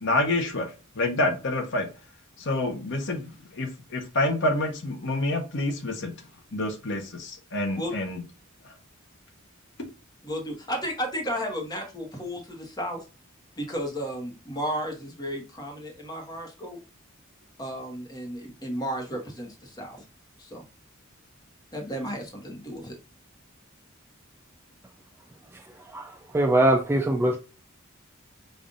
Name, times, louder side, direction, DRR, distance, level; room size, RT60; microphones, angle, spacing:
voice 1, 0.0-0.7 1.0-1.9 2.4-6.1 6.5-8.2, left 2 dB, 60° left, 0.8 m, -27 dB
voice 2, 10.2-13.0 13.6-16.8 17.6-20.0 20.4-20.6 21.7-22.9, equal, 20° left, 1.1 m, -33 dB
voice 3, 25.9-27.4, right 1 dB, 10° right, 0.3 m, -23 dB
5.3 x 2.5 x 2.5 m
head